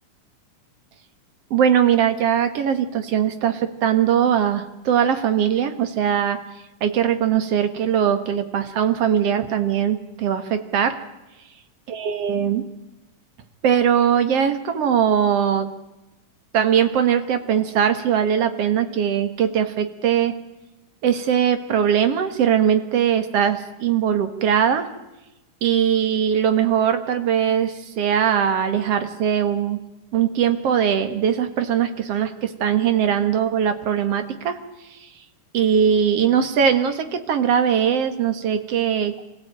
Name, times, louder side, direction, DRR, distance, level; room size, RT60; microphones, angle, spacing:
voice 1, 1.5-6.4 6.8-11.0 11.9-12.6 13.6-15.7 16.5-20.3 21.0-24.9 25.6-29.8 30.1-34.6 35.5-39.2, right 8 dB, 55° right, 8 dB, 2.4 m, -20 dB
25.5 x 16.0 x 9.0 m, 0.99 s
omnidirectional pair, 3.7 m